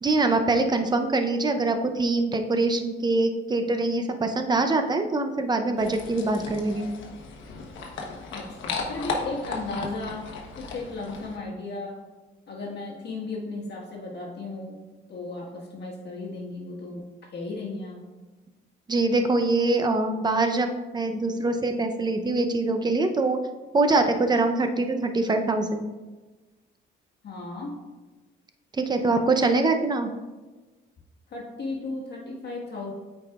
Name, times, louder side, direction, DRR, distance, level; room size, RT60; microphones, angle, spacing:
voice 1, 0.0-6.9 18.9-23.4 23.7-25.9 28.7-30.1, right 2 dB, 20° right, 6 dB, 0.6 m, -24 dB
sound 1, 5.8-11.4, left 4 dB, 75° left, 1.0 m, -35 dB
voice 2, 8.3-10.3 10.6-12.0 12.5-14.8 15.1-18.0 27.2-27.8 31.3-32.9, left 3 dB, 55° left, -2 dB, 1.5 m, -35 dB
8.3 x 4.8 x 2.4 m, 1.2 s
cardioid pair, 90°, 20 cm